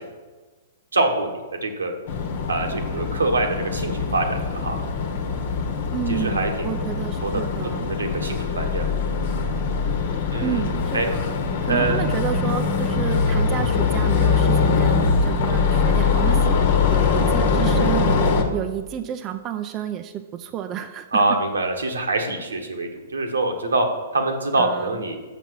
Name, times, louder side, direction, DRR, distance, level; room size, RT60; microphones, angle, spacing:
voice 1, 0.9-1.9 2.5-4.8 6.1-6.5 7.2-7.4 7.7-9.1 10.3-10.6 10.9-11.1 11.7-12.0 21.1-23.9 24.1-25.2, right 2 dB, 85° right, 3 dB, 1.4 m, -24 dB
sound 1, 2.1-18.4, left 4 dB, 60° left, 1.1 m, -22 dB
voice 2, 5.9-7.9 10.4-11.3 11.6-16.6 16.9-21.2 24.6-25.0, right 10 dB, 30° right, 7 dB, 0.5 m, -31 dB
6.9 x 5.9 x 6.3 m, 1.3 s
hypercardioid pair, 115°, 0 cm